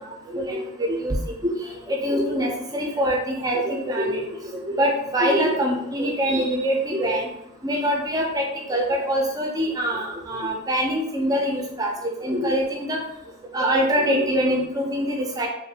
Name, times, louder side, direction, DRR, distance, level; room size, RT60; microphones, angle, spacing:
voice 1, 0.0-7.3 7.6-13.0 13.5-15.5, equal, 20° right, 0 dB, 0.4 m, -24 dB
3.1 x 2.5 x 2.7 m, 0.81 s
head